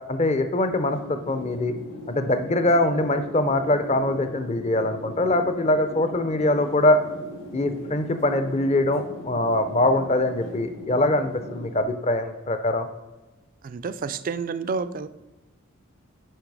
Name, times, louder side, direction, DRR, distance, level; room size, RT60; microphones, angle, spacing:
voice 1, 0.1-1.7 2.1-7.0 7.5-12.9, left 1 dB, 30° left, 9 dB, 0.6 m, -23 dB
sound 1, 0.7-11.8, equal, 70° left, 2.3 m, -39 dB
voice 2, 13.6-15.1, right 5 dB, 40° right, 13 dB, 0.4 m, -29 dB
8.9 x 5.3 x 4.7 m, 1.1 s
head